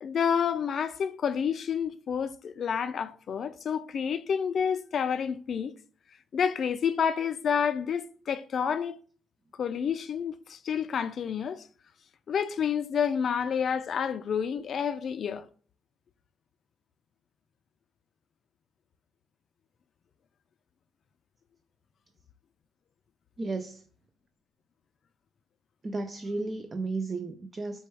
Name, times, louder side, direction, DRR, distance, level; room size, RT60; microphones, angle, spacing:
voice 1, 0.0-5.7 6.3-9.0 9.6-11.6 12.3-15.4, left 7 dB, 55° left, 0.4 m, -29 dB
voice 2, 23.4-23.8 25.8-27.9, right 3 dB, 30° right, 0.4 m, -33 dB
4.2 x 2.3 x 4.6 m
cardioid pair, 90°, 0 cm